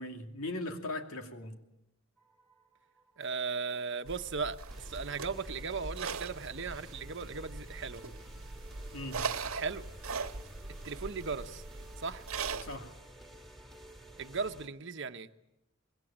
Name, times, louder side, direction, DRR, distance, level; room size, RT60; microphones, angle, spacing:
voice 1, 0.0-1.6 8.9-9.3 12.6-12.9, left 2 dB, 85° left, 2.8 m, -39 dB
sound 1, 2.2-14.7, equal, ahead, 2.3 m, -53 dB
voice 2, 3.2-8.0 9.5-9.8 10.8-11.6 12.0-12.2 14.2-15.3, right 5 dB, 60° right, 1.1 m, -37 dB
sound 2, 4.1-12.8, right 4 dB, 85° right, 1.4 m, -41 dB
25.5 x 21.5 x 8.9 m
head